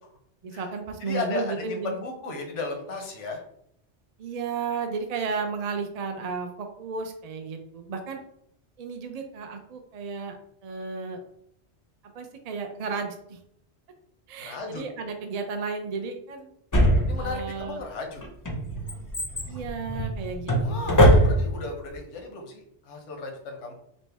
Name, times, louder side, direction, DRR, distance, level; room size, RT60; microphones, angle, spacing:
voice 1, 0.4-2.0 4.2-8.2 8.8-10.4 10.6-11.2 12.1-13.4 14.3-16.5 17.2-17.8 19.4-21.0, right 5 dB, 50° right, 5 dB, 0.5 m, -33 dB
voice 2, 1.0-3.4 14.4-14.8 17.1-18.2 20.6-23.7, left 3 dB, 85° left, 2 dB, 1.1 m, -35 dB
Drawer open or close, 16.7-17.6 18.2-21.7 22.0-22.1, equal, 25° left, 0.5 m, -21 dB
5.4 x 2.1 x 3.3 m, 0.72 s
omnidirectional pair, 1.2 m